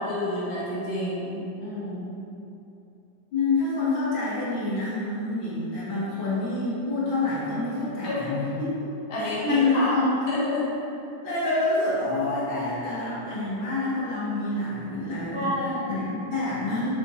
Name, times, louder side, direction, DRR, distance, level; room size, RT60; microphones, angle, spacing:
voice 1, 0.0-2.2 8.0-8.4 9.1-9.9 10.3-10.7 15.3-15.9, left 1 dB, 55° left, -8 dB, 2.1 m, -29 dB
voice 2, 3.3-8.7 9.2-10.2 11.2-15.5 15.9-16.9, left 2 dB, 75° left, -8 dB, 2.3 m, -27 dB
7.2 x 7.1 x 3.2 m, 2.7 s
omnidirectional pair, 2.1 m